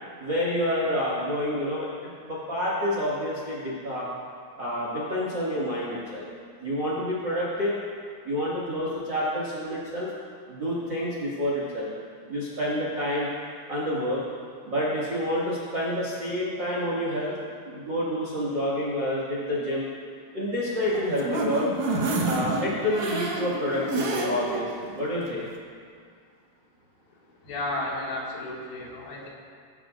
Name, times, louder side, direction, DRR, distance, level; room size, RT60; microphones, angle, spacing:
voice 1, 0.2-4.1 4.6-6.2 6.6-7.8 8.2-10.1 10.5-11.9 12.3-13.3 13.7-14.2 14.6-17.4 17.6-19.8 20.3-21.7 22.2-25.4, equal, 60° right, -6 dB, 1.1 m, -28 dB
sound 1, 20.7-24.6 25.0-25.1 25.5-25.6, right 2 dB, 90° right, 1.6 m, -29 dB
voice 2, 27.4-29.3, left 1 dB, 85° left, -4 dB, 4.9 m, -33 dB
22.5 x 12.0 x 2.6 m, 2.2 s
omnidirectional pair, 5.9 m